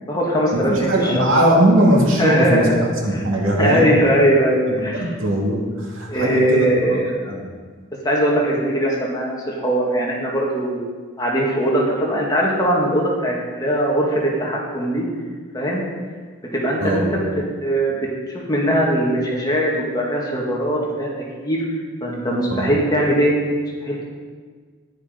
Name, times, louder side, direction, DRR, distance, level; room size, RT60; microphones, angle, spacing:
voice 1, 0.0-1.3 2.2-3.3 3.6-5.1 6.1-7.1 8.0-10.9 11.2-15.1 15.5-15.8 16.5-17.2 17.6-21.1 21.4-21.6 22.0-23.3 23.8-24.0, equal, 20° left, -3 dB, 2.1 m, -20 dB
voice 2, 0.5-2.7 3.0-3.9 4.7-5.6 5.9-6.7 7.3-7.4 16.8-17.0 22.5-22.7, right 1 dB, 80° right, -2 dB, 2.6 m, -19 dB
10.5 x 10.5 x 5.3 m, 1.5 s
head